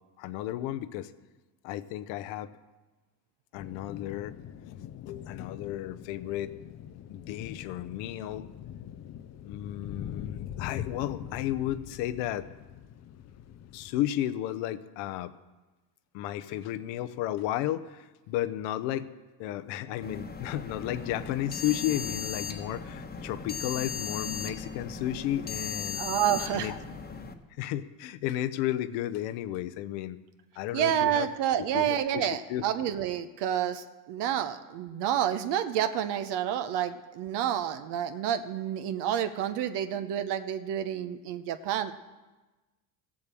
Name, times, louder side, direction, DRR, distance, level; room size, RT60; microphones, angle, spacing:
voice 1, 0.2-1.1 1.6-2.5 3.5-4.4 5.1-6.6 7.1-8.5 9.4-12.5 13.7-15.3 16.1-19.1 19.4-26.0 26.5-26.8 27.6-30.2 30.6-31.3 31.7-32.7, left 12 dB, 70° left, 12 dB, 0.9 m, -33 dB
sound 1, 3.6-14.0, left 10 dB, 35° left, 0.6 m, -43 dB
sound 2, 20.0-27.3, left 5 dB, 20° left, 1.2 m, -37 dB
voice 2, 26.0-26.7 30.7-41.9, right 10 dB, 60° right, 10 dB, 1.0 m, -29 dB
15.5 x 7.5 x 7.6 m, 1.2 s
supercardioid pair, 100°, 47 cm